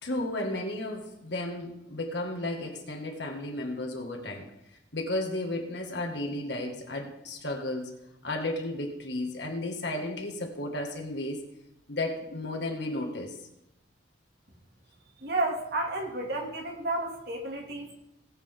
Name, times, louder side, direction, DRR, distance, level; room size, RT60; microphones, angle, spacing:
voice 1, 0.0-4.5 4.9-7.9 8.2-11.4 11.9-13.3, left 1 dB, 60° left, 2 dB, 2.1 m, -33 dB
voice 2, 15.2-17.9, right 2 dB, 55° right, 1 dB, 2.5 m, -31 dB
19.0 x 8.2 x 3.7 m, 0.87 s
head